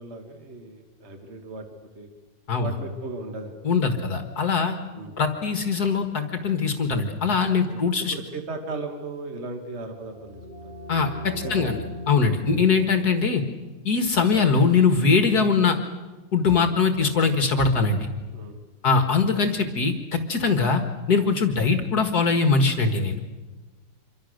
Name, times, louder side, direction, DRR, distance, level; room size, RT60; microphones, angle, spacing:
voice 1, 0.0-1.6 2.0-2.1 2.6-3.6 4.9-5.2 7.7-7.8 8.1-10.7 11.3-11.7 12.4-12.5 18.3-18.6, right 3 dB, 35° right, 5 dB, 2.3 m, -36 dB
voice 2, 3.6-4.8 5.2-8.1 10.9-11.8 12.1-13.4 13.9-15.8 16.3-18.1 18.8-20.8 21.1-23.2, left 4 dB, 60° left, 7 dB, 2.1 m, -22 dB
sound 1, 9.9-15.4, left 2 dB, 30° left, 3.6 m, -40 dB
26.5 x 24.5 x 6.6 m, 1.2 s
omnidirectional pair, 2.0 m